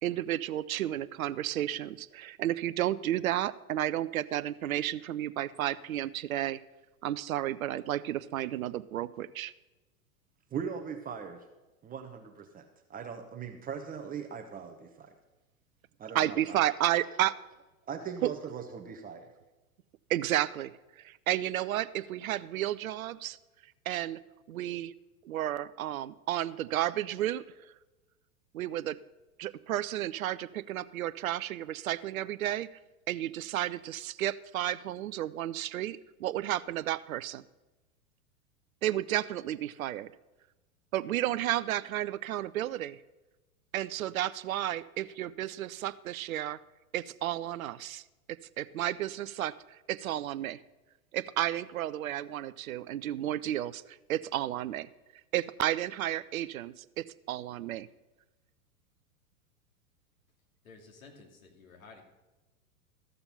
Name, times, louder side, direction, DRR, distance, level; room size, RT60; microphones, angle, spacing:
voice 1, 0.0-6.6 7.0-9.5 16.1-17.4 18.2-18.3 20.1-23.4 23.9-24.2 24.5-24.9 25.3-27.4 28.5-29.0 29.4-32.8 33.1-37.4 38.8-40.1 40.9-43.0 43.7-46.6 46.9-48.0 48.3-50.6 51.1-53.8 54.1-54.9 55.3-57.9, right 13 dB, 70° right, 16 dB, 0.6 m, -32 dB
voice 2, 10.5-11.5 11.8-15.1 16.0-16.9 17.9-19.3, right 7 dB, 20° right, 5 dB, 0.9 m, -40 dB
voice 3, 60.6-62.0, left 4 dB, 70° left, 3 dB, 2.5 m, -53 dB
14.0 x 7.0 x 5.5 m, 1.1 s
figure-of-eight pair, 95°, 44 cm